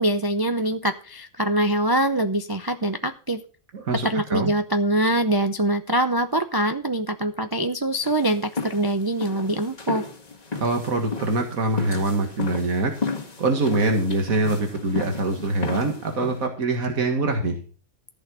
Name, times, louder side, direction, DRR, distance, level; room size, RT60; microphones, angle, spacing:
voice 1, 0.0-3.4 4.0-10.0, right 1 dB, 25° right, 8 dB, 0.5 m, -24 dB
voice 2, 3.7-4.5 10.6-12.9 13.4-17.6, right 2 dB, 90° right, 3 dB, 2.2 m, -24 dB
sound 1, 8.0-16.5, left 4 dB, 30° left, 1.9 m, -34 dB
14.5 x 6.4 x 6.1 m, 0.38 s
omnidirectional pair, 1.4 m